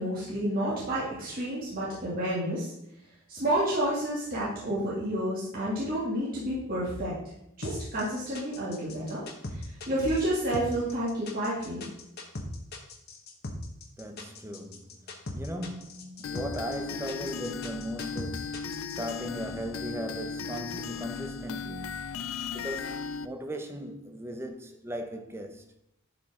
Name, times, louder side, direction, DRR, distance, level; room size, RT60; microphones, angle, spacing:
voice 1, 0.0-2.7 3.3-7.1 7.6-9.2 9.5-11.9, right 1 dB, 40° right, 2.2 m, -30 dB
sound 1, 7.6-19.1, left 2 dB, 45° left, 1.2 m, -39 dB
voice 2, 14.0-14.9 15.3-22.3 22.5-25.6, equal, 10° right, 0.7 m, -38 dB
sound 2, 16.2-23.3, left 5 dB, 70° left, 0.4 m, -37 dB
11.0 x 4.9 x 3.7 m
head